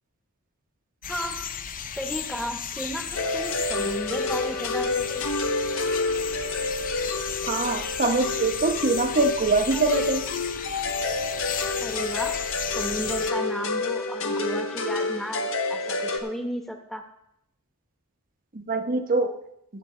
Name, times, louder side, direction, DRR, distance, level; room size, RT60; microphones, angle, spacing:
sound 1, 1.0-13.3, left 8 dB, 40° left, 0.6 m, -34 dB
voice 1, 1.1-1.5 2.0-5.2 11.8-12.4 12.7-17.1, equal, ahead, 4 dB, 1.2 m, -34 dB
sound 2, 3.1-16.2, left 3 dB, 65° left, 1.4 m, -29 dB
voice 2, 7.5-10.2 18.5-19.3, right 3 dB, 40° right, 6 dB, 1.0 m, -23 dB
23.5 x 7.9 x 3.3 m, 0.80 s
head